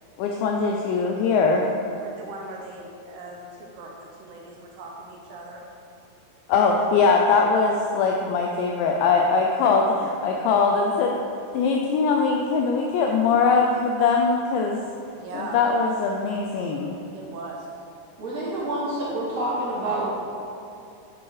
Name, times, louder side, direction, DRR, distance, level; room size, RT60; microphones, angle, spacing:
voice 1, 0.2-1.7 6.5-11.2 11.5-14.8 15.3-17.0, left 4 dB, 80° left, 1 dB, 2.7 m, -21 dB
voice 2, 1.9-5.6 6.5-6.7 10.0-10.1 15.1-15.6 17.1-17.7, right 2 dB, 70° right, -1 dB, 2.7 m, -40 dB
voice 3, 18.2-20.1, right 1 dB, 35° right, -10 dB, 3.5 m, -27 dB
12.5 x 7.5 x 4.9 m, 2.7 s
omnidirectional pair, 5.7 m